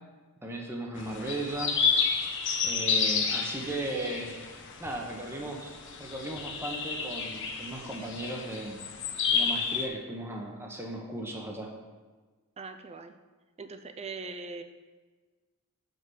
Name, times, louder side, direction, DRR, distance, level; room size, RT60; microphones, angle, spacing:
voice 1, 0.4-1.8 2.6-4.4 4.8-5.7 6.0-8.8 9.3-11.7, right 1 dB, 10° right, -1 dB, 1.0 m, -36 dB
sound 1, 1.0-9.9, left 5 dB, 55° left, 0.9 m, -31 dB
voice 2, 5.1-5.5 12.6-13.2 13.6-14.6, right 4 dB, 30° right, 8 dB, 0.5 m, -41 dB
7.1 x 5.3 x 6.3 m, 1.3 s
head